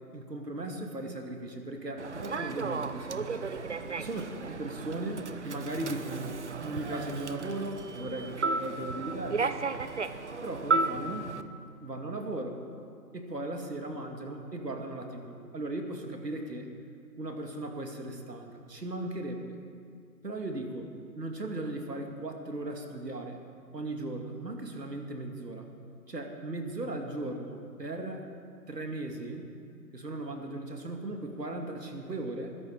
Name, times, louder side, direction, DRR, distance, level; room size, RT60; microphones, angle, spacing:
voice 1, 0.1-3.5 4.0-9.6 10.4-11.4 11.8-12.6 13.1-16.7 17.2-19.6 20.2-20.9 21.2-23.4 23.7-25.7 26.1-28.3 28.7-29.5 29.9-32.6, right 2 dB, 70° right, 3 dB, 2.3 m, -37 dB
Human voice / Subway metro underground, 2.0-11.4, right 4 dB, 45° right, 0.7 m, -34 dB
21.0 x 11.0 x 4.8 m, 2.3 s
figure-of-eight pair, 140°, 50 cm